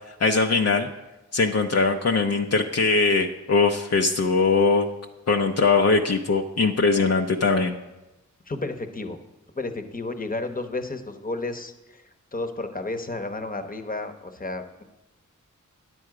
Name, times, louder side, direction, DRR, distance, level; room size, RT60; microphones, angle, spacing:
voice 1, 0.2-0.9 1.3-4.9 5.3-7.7, left 4 dB, 55° left, 3 dB, 0.6 m, -21 dB
voice 2, 8.5-9.2 9.6-12.0 12.3-14.8, left 2 dB, 25° left, 8 dB, 1.0 m, -32 dB
10.0 x 7.8 x 4.8 m, 1.0 s
cardioid pair, 55°, 31 cm